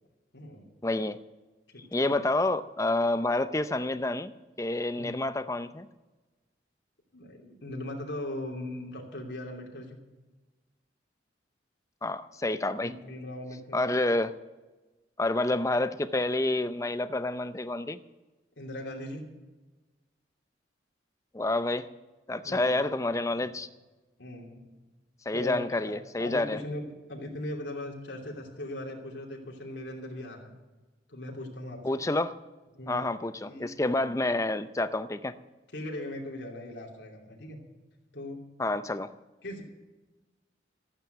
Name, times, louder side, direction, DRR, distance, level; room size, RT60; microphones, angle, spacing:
voice 1, 0.8-1.2 1.9-4.3 4.6-5.9 12.0-12.9 13.7-14.3 15.2-18.0 21.3-21.9 22.3-23.7 25.3-26.6 31.8-32.3 32.9-35.3 38.6-39.1, left 2 dB, 15° left, 12 dB, 0.5 m, -28 dB
voice 2, 7.1-10.0 12.8-13.9 18.6-19.2 22.4-22.8 23.3-23.6 24.2-24.6 25.3-25.9 26.2-30.5 31.1-32.0 32.7-33.1 33.4-33.7 35.7-37.6 38.1-38.4 39.4-39.6, left 1 dB, 80° left, -1 dB, 2.8 m, -39 dB
14.0 x 9.0 x 7.9 m, 1.2 s
head